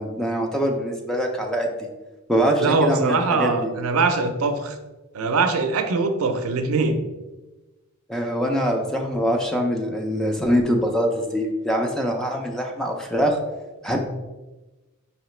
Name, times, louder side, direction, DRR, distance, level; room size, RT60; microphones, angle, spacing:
voice 1, 0.0-1.9 2.3-3.7 8.1-13.4 13.8-14.0, equal, ahead, 1 dB, 0.4 m, -23 dB
voice 2, 2.6-4.8 5.1-7.0, right 4 dB, 80° right, 7 dB, 0.5 m, -22 dB
4.8 x 3.0 x 3.1 m, 1.1 s
head